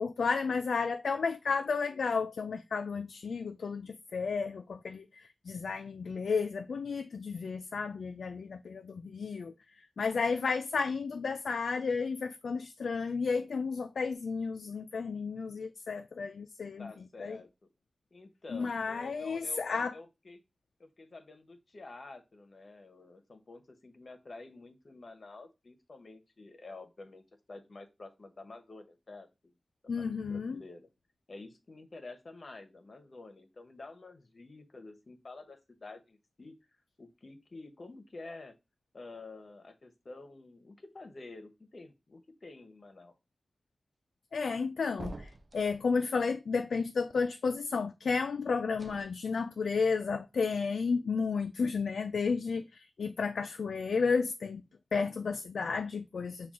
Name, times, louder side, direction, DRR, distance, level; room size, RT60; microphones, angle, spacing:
voice 1, 0.0-5.1 5.5-9.5 10.0-16.9 17.2-17.4 18.5-19.9 29.9-30.6 44.3-54.6 54.9-56.5, left 5 dB, 85° left, 0.3 m, -32 dB
voice 2, 16.8-17.5 18.1-20.4 20.8-29.5 30.0-30.9 31.3-36.5 37.0-38.5 38.9-43.1, left 3 dB, 50° left, 0.8 m, -49 dB
sound 1, 45.0-45.9 48.7-49.0, right 2 dB, 40° right, 0.3 m, -45 dB
5.9 x 2.3 x 3.5 m
wide cardioid pair, 85°, 0 cm